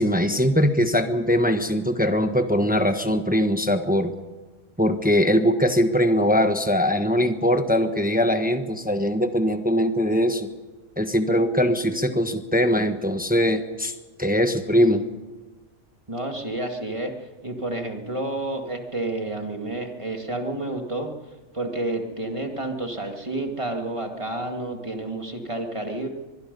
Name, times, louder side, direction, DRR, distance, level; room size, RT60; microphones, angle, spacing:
voice 1, 0.0-4.1 4.8-10.5 11.0-13.9 14.2-15.0, equal, 5° right, 7 dB, 1.1 m, -21 dB
voice 2, 16.1-17.1 17.4-21.1 21.5-26.1, right 2 dB, 20° right, 3 dB, 2.0 m, -30 dB
24.5 x 21.5 x 5.4 m, 1.2 s
omnidirectional pair, 1.4 m